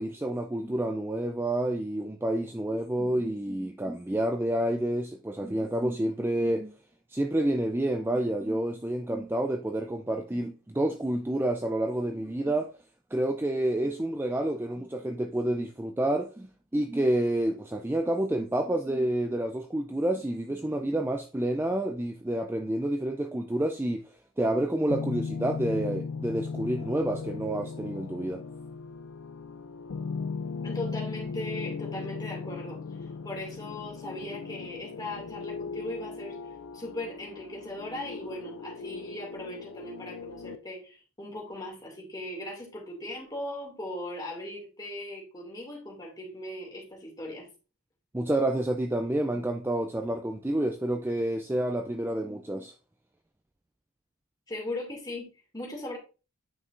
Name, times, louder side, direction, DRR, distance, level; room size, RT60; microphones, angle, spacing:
voice 1, 0.0-6.7 7.1-12.7 13.1-28.4 48.1-52.7, right 1 dB, 10° right, 0.4 m, -29 dB
sound 1, 24.9-40.6, left 5 dB, 80° left, 0.5 m, -37 dB
voice 2, 30.6-32.8 33.2-36.4 36.7-47.5 54.5-55.3 55.5-56.0, left 1 dB, 20° left, 2.5 m, -38 dB
9.5 x 5.4 x 2.6 m
head